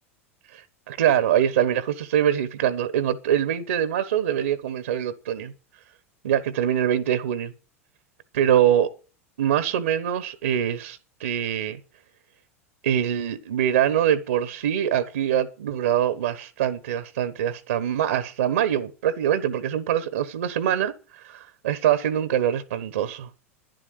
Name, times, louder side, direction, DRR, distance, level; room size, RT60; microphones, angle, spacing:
voice 1, 0.5-5.5 6.2-7.5 8.3-8.9 9.4-11.8 12.8-23.3, right 10 dB, 70° right, 1.2 m, -24 dB
12.0 x 10.5 x 6.7 m
figure-of-eight pair, 85°, 8 cm